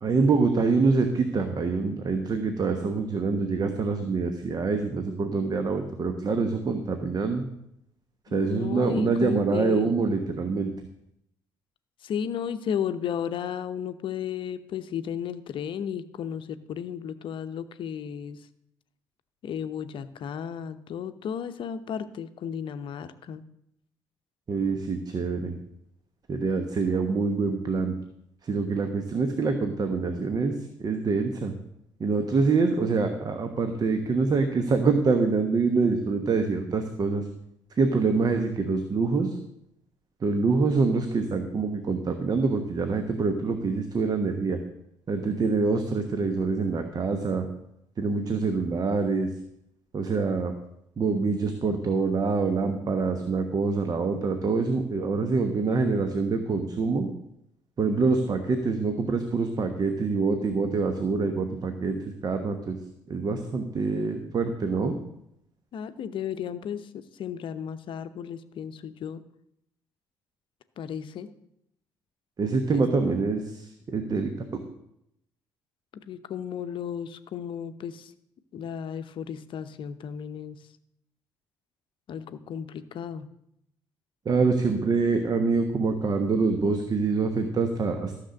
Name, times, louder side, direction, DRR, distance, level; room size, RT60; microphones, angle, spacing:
voice 1, 0.0-7.4 8.3-10.7 24.5-25.5 26.3-27.9 28.4-31.5 32.0-37.3 37.8-39.4 40.2-44.6 45.1-47.5 48.0-49.3 49.9-50.5 51.0-57.1 57.8-62.8 63.1-64.9 72.4-74.6 84.2-88.1, right 4 dB, 35° right, 7 dB, 1.2 m, -25 dB
voice 2, 8.3-9.9 12.0-18.4 19.4-23.4 53.7-53.8 65.7-69.2 70.8-71.3 72.7-72.8 76.1-78.1 78.5-80.6 82.1-83.3, left 8 dB, 50° left, 11 dB, 0.8 m, -34 dB
14.0 x 6.7 x 6.6 m, 0.80 s
figure-of-eight pair, 45°, 11 cm